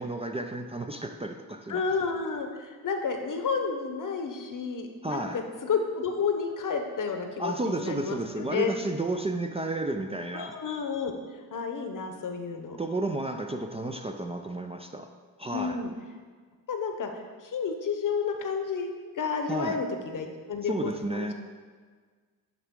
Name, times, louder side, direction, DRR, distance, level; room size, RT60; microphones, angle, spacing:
voice 1, 0.0-1.8 5.0-5.4 7.4-10.6 12.8-15.1 15.4-15.8 19.5-19.8 20.6-21.3, right 2 dB, 15° right, 4 dB, 0.4 m, -32 dB
voice 2, 1.7-8.7 10.3-11.1 11.5-12.8 15.5-15.9 16.7-21.3, left 5 dB, 55° left, 5 dB, 0.9 m, -31 dB
10.5 x 3.5 x 3.7 m, 1.5 s
cardioid pair, 60°, 38 cm